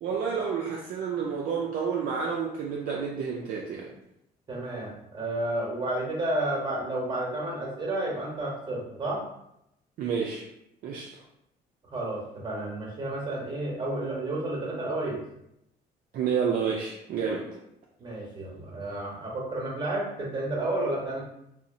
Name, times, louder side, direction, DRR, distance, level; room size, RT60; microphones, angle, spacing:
voice 1, 0.0-4.0 10.0-10.4 10.8-11.1 16.1-17.5, right 6 dB, 55° right, -2 dB, 0.4 m, -29 dB
voice 2, 4.5-9.2 11.9-15.2 18.0-21.2, right 1 dB, 25° right, -3 dB, 0.9 m, -31 dB
2.6 x 2.0 x 2.5 m, 0.81 s
cardioid pair, 110°, 17 cm